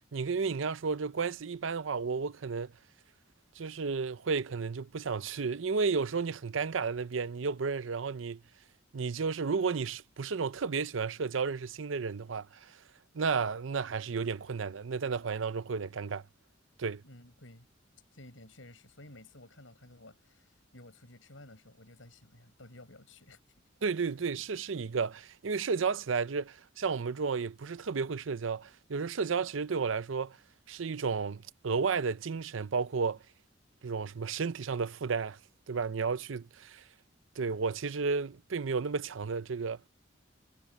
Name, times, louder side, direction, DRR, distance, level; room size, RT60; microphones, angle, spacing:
voice 1, 0.1-2.7 3.6-8.4 8.9-12.8 13.1-16.2 16.8-17.0 23.8-30.4 30.7-33.2 33.8-35.4 35.7-36.8 37.4-39.8, right 5 dB, 85° right, 0.6 m, -32 dB
voice 2, 17.0-17.7 18.1-23.4, left 1 dB, 80° left, 7.1 m, -53 dB
head